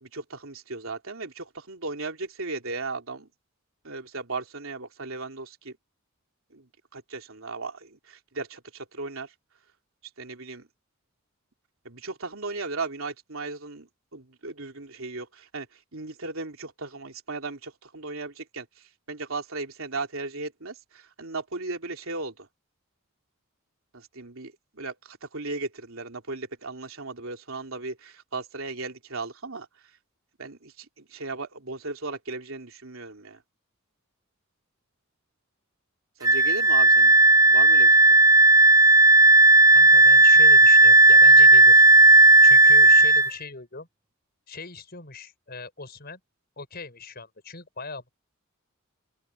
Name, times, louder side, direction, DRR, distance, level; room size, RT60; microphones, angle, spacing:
voice 1, 0.0-3.3 3.8-5.8 6.5-9.3 10.2-10.7 11.8-22.5 23.9-29.7 30.4-33.4 36.2-37.1 37.5-38.2, right 3 dB, 75° right, 3.1 m, -36 dB
Wind instrument woodwind instrument, 36.2-43.3, right 2 dB, 15° right, 0.9 m, -14 dB
voice 2, 39.4-41.8 42.1-43.9 44.5-46.2 46.6-48.2, left 4 dB, 45° left, 6.3 m, -40 dB
open air
head